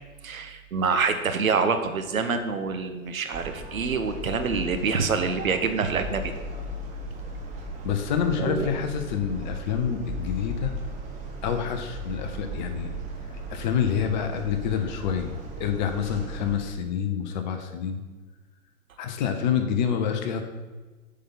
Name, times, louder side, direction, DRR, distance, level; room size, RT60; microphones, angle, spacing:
voice 1, 0.2-6.3 8.4-8.7, right 5 dB, 70° right, 7 dB, 1.0 m, -26 dB
sound 1, 3.3-16.6, right 1 dB, 15° right, 0.9 m, -37 dB
voice 2, 7.8-10.7 11.4-12.9 13.5-18.0 19.0-20.4, left 8 dB, 30° left, 6 dB, 0.8 m, -27 dB
6.6 x 5.3 x 5.6 m, 1.3 s
figure-of-eight pair, 110°, 43 cm